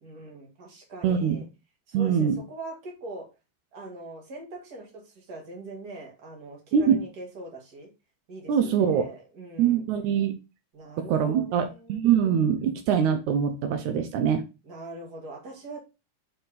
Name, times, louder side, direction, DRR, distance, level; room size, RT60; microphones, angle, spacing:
voice 1, 0.0-1.4 1.9-3.3 3.7-7.9 8.3-9.8 10.7-12.0 14.6-15.8, right 2 dB, 35° right, 1 dB, 2.2 m, -42 dB
voice 2, 1.0-1.4 1.9-2.4 6.7-7.0 8.5-9.1 9.6-10.3 11.0-14.5, right 8 dB, 80° right, 8 dB, 2.1 m, -23 dB
6.5 x 4.5 x 4.1 m, 0.28 s
omnidirectional pair, 3.4 m